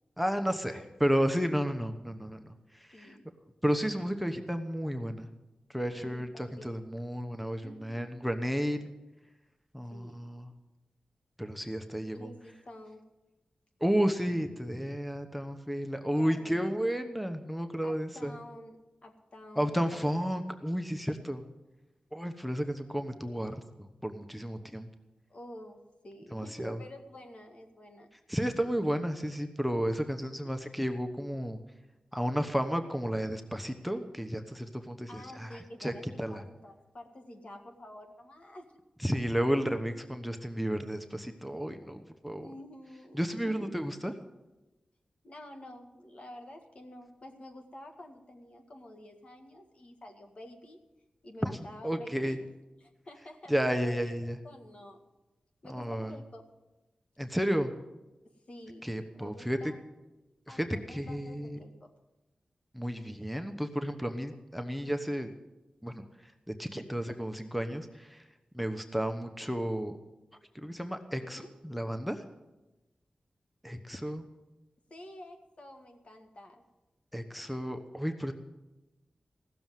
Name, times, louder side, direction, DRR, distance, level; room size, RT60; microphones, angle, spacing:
voice 1, 0.2-3.2 3.6-5.3 5.7-8.8 9.7-10.5 11.4-12.3 13.8-18.4 19.6-21.5 22.1-24.9 26.3-26.8 28.3-31.6 32.1-35.9 36.2-36.4 39.0-42.5 43.1-44.1 51.4-51.5 51.8-52.4 53.5-54.4 55.7-56.1 57.2-57.7 58.8-59.7 60.5-61.6 62.7-65.3 65.8-66.0 66.5-68.2 68.5-70.0 70.5-72.2 73.6-74.3 77.1-78.3, equal, ahead, 7 dB, 1.0 m, -32 dB
voice 2, 2.9-3.3 5.9-6.8 7.6-8.0 9.9-10.2 12.1-13.0 16.1-16.8 17.8-20.1 25.3-28.1 30.1-30.5 35.1-38.7 42.4-43.9 45.2-50.8 51.2-52.5 52.8-54.1 54.4-55.0 55.6-56.5 58.5-59.8 60.5-61.9 71.2-71.5 74.9-76.6, left 1 dB, 55° left, 4 dB, 1.8 m, -49 dB
15.5 x 7.0 x 9.2 m, 1.1 s
cardioid pair, 60°, 2 cm